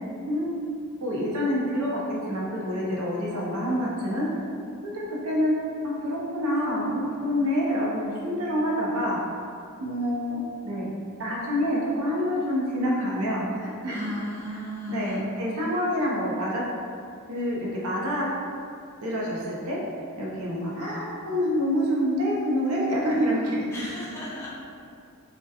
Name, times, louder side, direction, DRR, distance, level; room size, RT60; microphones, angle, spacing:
voice 1, 1.0-4.3 4.8-5.5 5.8-9.2 9.8-10.9 11.2-14.1 14.5-14.6 14.9-16.6 17.3-18.3 19.0-19.8 20.2-23.7, equal, 70° right, -4 dB, 0.5 m, -27 dB
voice 2, 13.9-15.2 23.7-24.5, equal, 10° left, -7 dB, 0.4 m, -35 dB
2.7 x 2.1 x 2.2 m, 2.4 s
head